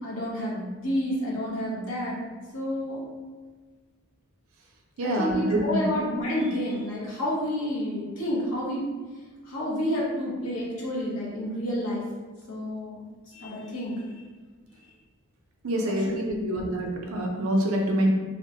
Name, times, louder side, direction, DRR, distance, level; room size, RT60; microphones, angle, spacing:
voice 1, 0.0-2.2 2.5-3.0 5.0-8.8 9.5-12.0 12.5-14.2 15.9-16.5, equal, 65° left, -5 dB, 0.8 m, -30 dB
voice 2, 5.0-5.8 15.6-18.1, right 1 dB, 70° right, 0 dB, 0.5 m, -26 dB
2.9 x 2.1 x 2.7 m, 1.4 s
head